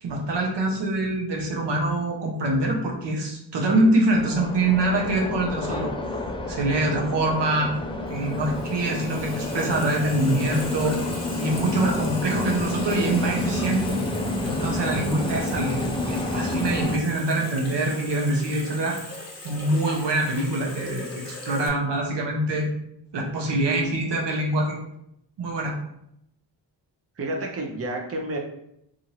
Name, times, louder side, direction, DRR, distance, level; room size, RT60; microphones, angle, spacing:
voice 1, 0.0-5.9 6.5-7.7 8.1-11.0 11.4-14.0 14.4-19.0 19.4-22.7 23.1-24.8 25.4-25.8, right 2 dB, 65° right, 0 dB, 0.8 m, -24 dB
sound 1, 4.1-17.0, left 2 dB, 10° left, 0.4 m, -29 dB
Water tap faucet / Sink (filling or washing), 8.1-21.7, left 2 dB, 35° left, 0.9 m, -39 dB
voice 2, 27.2-28.4, right 1 dB, 30° right, 0 dB, 0.7 m, -30 dB
2.6 x 2.5 x 3.0 m, 0.78 s
cardioid pair, 50°, 45 cm